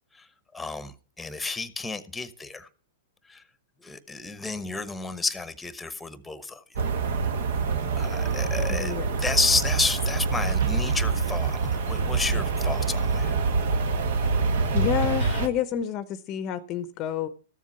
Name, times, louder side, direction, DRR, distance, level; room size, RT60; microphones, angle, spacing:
voice 1, 0.1-2.7 3.2-3.4 3.8-6.8 7.9-13.3, left 3 dB, 10° left, 14 dB, 1.0 m, -31 dB
sound 1, 6.8-15.5, right 4 dB, 65° right, 1.3 m, -25 dB
voice 2, 8.7-9.1 14.7-17.3, left 9 dB, 35° left, 14 dB, 0.7 m, -29 dB
13.5 x 7.4 x 5.4 m, 0.38 s
hypercardioid pair, 115°, 0 cm